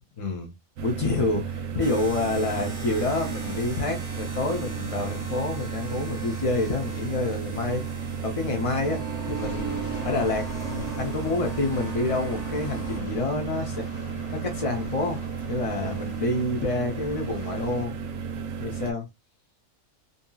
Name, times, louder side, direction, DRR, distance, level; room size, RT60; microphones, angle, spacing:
voice 1, 0.2-0.5 0.8-13.9 14.3-15.2 15.5-17.9 18.6-19.1, left 2 dB, 50° left, 0.4 m, -28 dB
sound 1, 0.8-18.9, right 6 dB, 70° right, 0.9 m, -33 dB
sound 2, 1.8-13.0, right 3 dB, 15° right, 0.8 m, -39 dB
sound 3, 9.3-17.9, left 2 dB, 80° left, 1.3 m, -44 dB
2.8 x 2.6 x 2.2 m
omnidirectional pair, 1.5 m